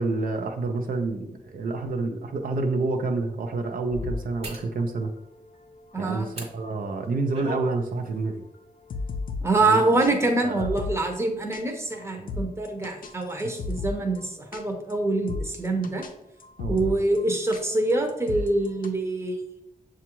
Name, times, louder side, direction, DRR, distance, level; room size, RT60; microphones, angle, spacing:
voice 1, 0.0-5.1 6.0-8.4 9.6-9.8 10.4-10.7 12.2-12.4 13.4-13.6 16.6-16.9, right 3 dB, 80° right, 4 dB, 0.5 m, -28 dB
sound 1, 1.6-1.7 2.3-2.5 4.4-4.7 6.3-6.5 7.0-7.7 8.0-8.2, right 1 dB, 50° right, 1.1 m, -37 dB
sound 2, 3.9-9.7 10.0-10.1 10.4-11.2 11.5-11.6 11.9-12.0 12.3-14.2 14.5-14.6 14.9-15.0 15.3-16.1 16.4-17.2 17.5-18.9, left 3 dB, 80° left, 0.5 m, -36 dB
voice 2, 5.9-6.3 9.4-16.0 16.7-19.4, right 2 dB, 20° right, 3 dB, 0.7 m, -25 dB
6.8 x 2.4 x 2.9 m, 0.83 s
wide cardioid pair, 115°, 14 cm